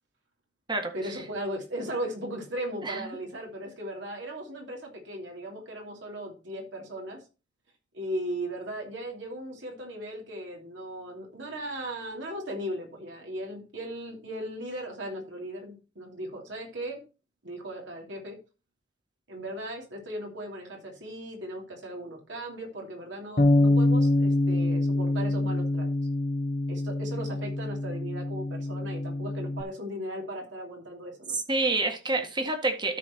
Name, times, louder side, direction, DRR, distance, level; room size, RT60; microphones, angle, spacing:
voice 1, 0.9-7.2 7.9-17.0 17.4-18.4 19.3-25.9 26.7-31.4, right 1 dB, 70° right, 3.0 m, -37 dB
Bass guitar, 23.4-29.6, left 1 dB, 50° left, 1.0 m, -25 dB
voice 2, 31.3-33.0, right 2 dB, 25° right, 1.8 m, -28 dB
13.0 x 4.5 x 4.3 m
head